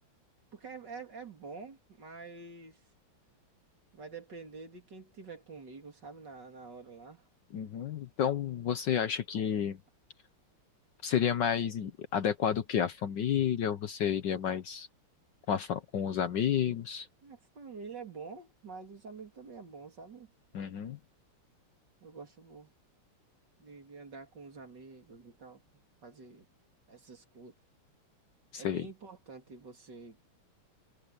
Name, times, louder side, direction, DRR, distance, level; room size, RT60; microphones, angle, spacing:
voice 1, 0.5-2.8 3.9-7.3 17.2-20.3 22.0-22.7 23.6-25.6 26.0-26.5 26.9-27.5 28.6-30.2, right 4 dB, 50° right, 3.7 m, -47 dB
voice 2, 7.5-9.8 11.0-14.9 15.5-17.1 20.5-21.0 28.5-28.9, left 8 dB, 60° left, 1.4 m, -31 dB
omnidirectional pair, 2.4 m